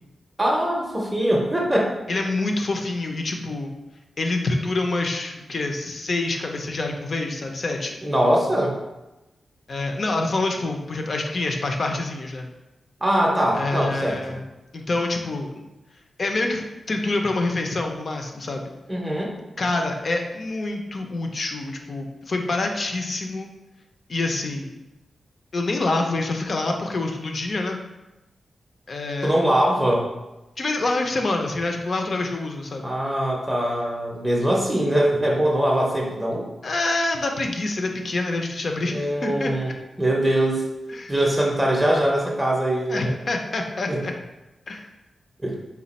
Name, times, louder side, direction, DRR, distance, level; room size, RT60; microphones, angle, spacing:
voice 1, 0.4-2.0 8.0-8.7 13.0-14.2 18.9-19.4 29.2-30.1 32.8-36.5 38.9-39.7 40.0-40.7 41.1-43.1 43.9-44.0 45.4-45.6, right 1 dB, 10° right, -2 dB, 0.6 m, -22 dB
voice 2, 2.1-3.7 4.2-8.0 9.7-12.5 13.5-14.4 14.7-15.5 16.2-18.7 19.6-23.5 24.1-24.7 25.5-27.8 28.9-29.3 30.6-32.9 36.6-39.7 40.9-41.1 42.9-44.1 44.7-44.9, left 2 dB, 45° left, 3 dB, 0.5 m, -26 dB
4.1 x 2.2 x 4.0 m, 1.0 s
wide cardioid pair, 130°, 0 cm